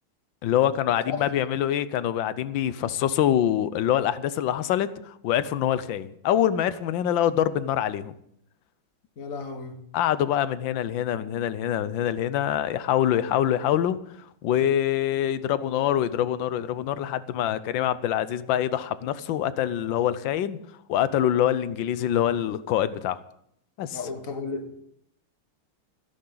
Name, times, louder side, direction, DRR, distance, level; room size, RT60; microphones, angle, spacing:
voice 1, 0.4-8.1 9.9-14.0 14.4-20.6 20.9-23.2 23.8-24.0, left 11 dB, 70° left, 1.4 m, -25 dB
voice 2, 9.2-9.8 23.9-24.8, left 4 dB, 40° left, 1.8 m, -33 dB
26.0 x 10.5 x 4.0 m
omnidirectional pair, 2.3 m